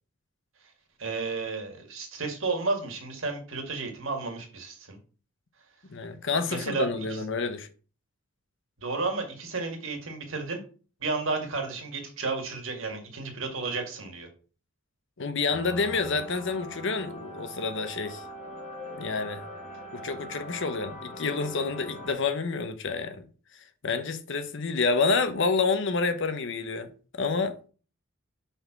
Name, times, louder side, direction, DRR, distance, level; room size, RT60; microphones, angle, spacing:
voice 1, 1.0-5.0 6.3-7.2 8.8-10.6 11.0-14.3, right 3 dB, 60° right, 1.9 m, -32 dB
voice 2, 5.9-7.7 15.2-18.2 19.0-19.4 19.9-23.3 23.8-27.6, left 4 dB, 55° left, 0.8 m, -28 dB
sound 1, 15.5-22.1, equal, 35° left, 1.5 m, -41 dB
5.6 x 4.2 x 5.9 m
head